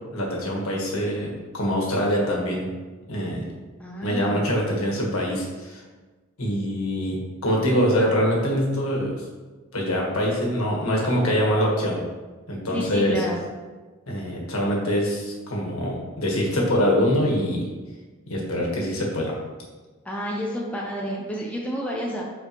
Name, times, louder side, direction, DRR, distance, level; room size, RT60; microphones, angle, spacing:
voice 1, 0.1-2.7 3.1-3.5 4.0-5.8 6.4-9.2 9.7-12.0 12.5-13.2 14.1-17.6 18.3-19.3, equal, 85° left, -2 dB, 1.6 m, -24 dB
voice 2, 3.8-4.5 12.7-13.4 20.0-22.2, equal, 5° left, -3 dB, 0.7 m, -30 dB
7.5 x 4.5 x 3.1 m, 1.3 s
head